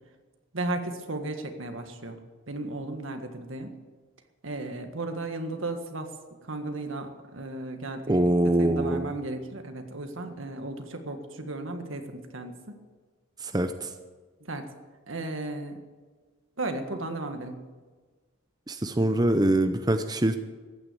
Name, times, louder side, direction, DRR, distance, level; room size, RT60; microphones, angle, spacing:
voice 1, 0.5-2.2 2.5-3.7 4.4-6.1 6.4-8.3 8.6-12.8 14.5-14.7 15.1-15.8 16.6-17.6, right 2 dB, 75° right, 6 dB, 1.7 m, -35 dB
voice 2, 8.1-9.1 13.4-13.9 18.7-20.4, right 1 dB, 20° right, 8 dB, 0.6 m, -24 dB
14.5 x 9.5 x 8.4 m, 1.4 s
head